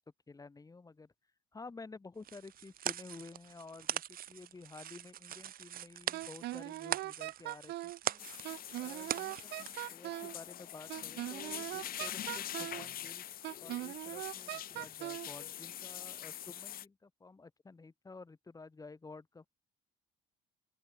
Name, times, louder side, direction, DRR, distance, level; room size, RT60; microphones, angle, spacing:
voice 1, 0.3-1.1 1.5-8.3 8.8-13.2 13.6-19.5, left 3 dB, 20° left, 6.2 m, -52 dB
sound 1, 2.2-9.8, right 11 dB, 60° right, 5.6 m, -41 dB
Wind instrument woodwind instrument, 6.1-8.0 8.4-10.4 10.9-12.9 13.4-15.3, right 17 dB, 80° right, 3.6 m, -41 dB
sound 2, 8.2-16.9, left 11 dB, 60° left, 2.5 m, -44 dB
open air
cardioid pair, 110°, 17 cm